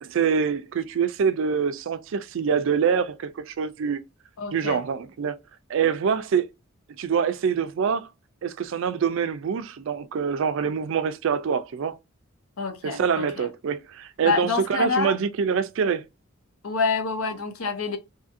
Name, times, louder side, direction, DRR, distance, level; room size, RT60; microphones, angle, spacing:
voice 1, 0.0-4.0 4.5-5.4 5.7-6.5 7.0-8.1 8.4-12.0 12.8-16.0, right 6 dB, 65° right, 0.4 m, -25 dB
voice 2, 4.4-4.8 12.6-13.5 14.2-15.1 16.6-18.0, left 5 dB, 80° left, 0.6 m, -27 dB
2.7 x 2.5 x 2.5 m
head